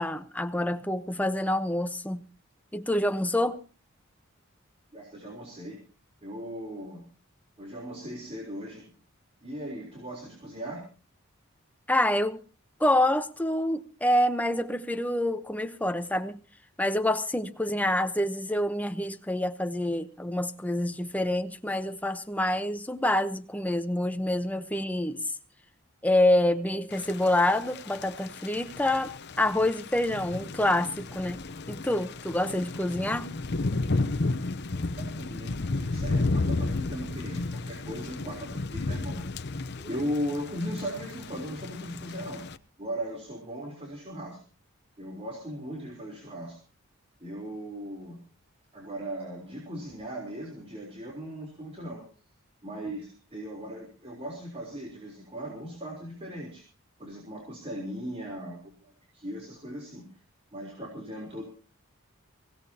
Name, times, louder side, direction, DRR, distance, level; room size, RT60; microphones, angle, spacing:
voice 1, 0.0-2.2 2.7-3.6 11.9-12.4 12.8-16.4 16.8-25.2 26.0-31.4 31.7-33.3 39.8-40.0, left 1 dB, 5° left, 0.9 m, -27 dB
voice 2, 4.9-5.8 6.2-7.1 7.6-8.9 9.4-10.8 35.0-39.4 39.9-42.5 42.8-44.4 45.0-46.6 47.2-48.2 48.7-52.0 52.6-56.6 57.0-60.1 60.5-61.4, equal, 30° right, 3.7 m, -38 dB
Thunder / Rain, 26.9-42.6, left 3 dB, 50° left, 0.8 m, -33 dB
24.0 x 16.5 x 2.9 m
head